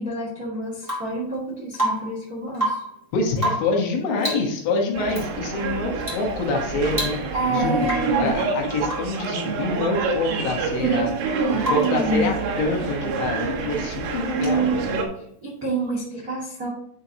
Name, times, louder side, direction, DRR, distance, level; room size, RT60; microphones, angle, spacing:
voice 1, 0.0-2.8 7.3-8.4 10.8-12.3 14.3-14.8 15.1-16.7, right 2 dB, 50° right, -5 dB, 1.0 m, -28 dB
Rain / Water tap faucet / Drip, 0.8-1.2 1.7-2.2 2.5-3.0 3.4-3.8 4.2-4.5 5.1-5.3 6.0-6.3 6.6-6.7 6.9-7.5 7.8-8.2 8.8-9.2 11.6-12.0 13.9-14.0, right 1 dB, 5° right, 2.1 m, -28 dB
voice 2, 3.1-7.2 7.5-11.1 11.5-14.9, left 3 dB, 70° left, 1 dB, 3.4 m, -26 dB
sound 1, 4.9-15.1, right 5 dB, 75° right, 3.8 m, -27 dB
10.5 x 5.7 x 2.8 m, 0.69 s
omnidirectional pair, 5.8 m